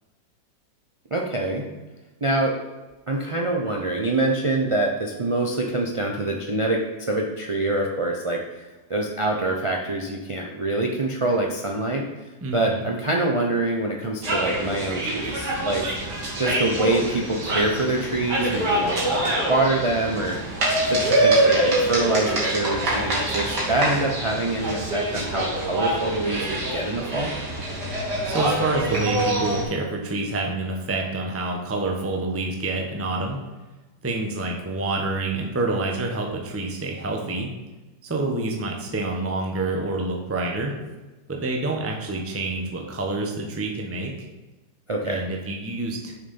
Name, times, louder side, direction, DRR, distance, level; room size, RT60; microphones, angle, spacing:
voice 1, 1.1-1.7 2.2-2.6 3.1-12.1 12.5-15.9 16.4-20.6 20.9-27.3 44.9-45.2, right 2 dB, 50° right, 0 dB, 0.3 m, -25 dB
voice 2, 12.4-12.8 28.2-33.4 34.0-37.5 38.0-40.7 41.3-44.3 45.0-46.1, right 2 dB, 10° right, 1 dB, 0.8 m, -27 dB
sound 1, 14.2-29.6, right 1 dB, 70° right, 2.8 m, -25 dB
6.9 x 6.6 x 5.4 m, 1.1 s
omnidirectional pair, 1.9 m